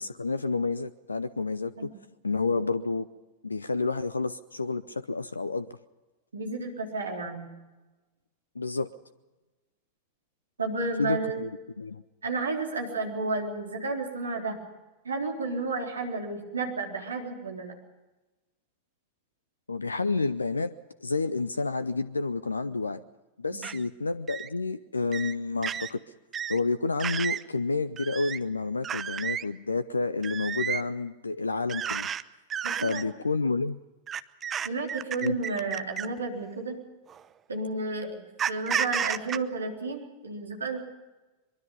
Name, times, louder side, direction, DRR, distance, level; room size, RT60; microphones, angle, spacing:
voice 1, 0.0-1.7 2.2-3.1 3.4-5.7 8.6-8.9 11.0-11.5 11.8-12.0 19.7-20.7 21.0-23.0 23.4-26.0 26.5-32.1 32.8-33.8 35.2-35.3, left 3 dB, 80° left, 18 dB, 0.6 m, -29 dB
voice 2, 6.3-7.5 10.6-11.4 12.2-14.6 15.0-17.7 23.5-23.7 32.6-33.1 34.6-36.8 37.5-40.8, right 3 dB, 75° right, 1 dB, 3.9 m, -32 dB
sound 1, 23.6-23.8 24.3-24.5 25.1-25.3 25.6-25.9 26.3-26.6 27.0-27.4 28.0-28.4 28.8-29.4 30.2-30.8 31.7-32.2 32.5-33.0 34.1-36.2 37.1-37.2 38.4-39.4, right 8 dB, 25° right, 0.8 m, -31 dB
23.0 x 23.0 x 5.4 m, 1.1 s
figure-of-eight pair, 90°, 0 cm